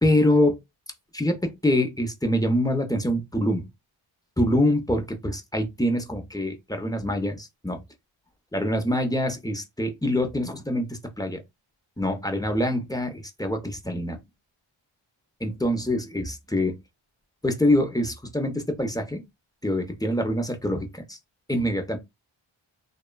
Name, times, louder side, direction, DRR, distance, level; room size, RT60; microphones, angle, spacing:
voice 1, 0.0-0.6 1.1-3.7 4.4-7.8 8.5-11.4 12.0-14.2 15.4-16.8 17.4-19.2 19.6-21.2 21.5-22.0, left 1 dB, 10° left, 0.6 m, -25 dB
2.8 x 2.2 x 2.2 m
cardioid pair, 50°, 50 cm